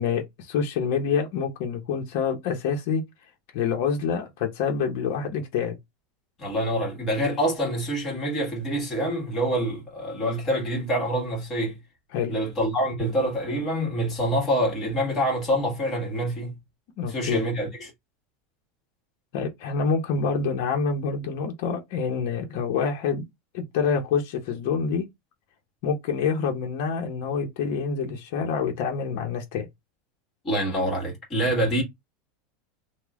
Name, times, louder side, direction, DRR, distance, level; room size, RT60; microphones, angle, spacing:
voice 1, 0.0-3.0 3.5-5.8 12.1-12.4 17.0-17.5 19.3-23.2 23.5-25.0 25.8-29.7, left 6 dB, 65° left, 0.8 m, -27 dB
voice 2, 6.4-11.8 12.3-16.6 17.1-17.9 30.4-31.8, equal, 30° left, 1.6 m, -26 dB
3.0 x 2.1 x 3.5 m
supercardioid pair, 135°, 0 cm